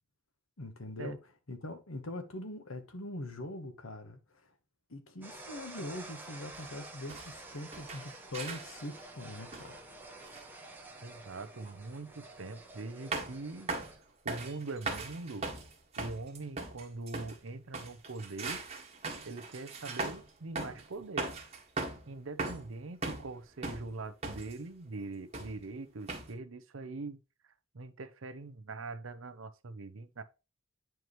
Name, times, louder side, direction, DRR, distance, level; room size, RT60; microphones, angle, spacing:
voice 1, 0.6-1.2 1.5-4.5 4.9-9.8, left 1 dB, 80° left, 1.2 m, -42 dB
sound 1, 5.2-14.0, right 2 dB, 10° right, 1.3 m, -50 dB
sound 2, 6.5-6.7 7.1-7.4 7.7-8.9 9.5-9.8 10.2-10.4 11.6-11.7 13.1-13.4 13.7-14.0 14.3-17.4 17.7-20.3 20.6-20.9 21.2-22.1 22.4-23.3 23.6-24.6 25.3-25.7 26.1-26.3, right 3 dB, 30° right, 1.7 m, -39 dB
voice 2, 11.0-13.7 14.2-15.5 16.0-18.6 19.2-21.3 22.1-27.2 27.4-30.2, right 3 dB, 70° right, 0.7 m, -42 dB
9.2 x 4.7 x 3.1 m
head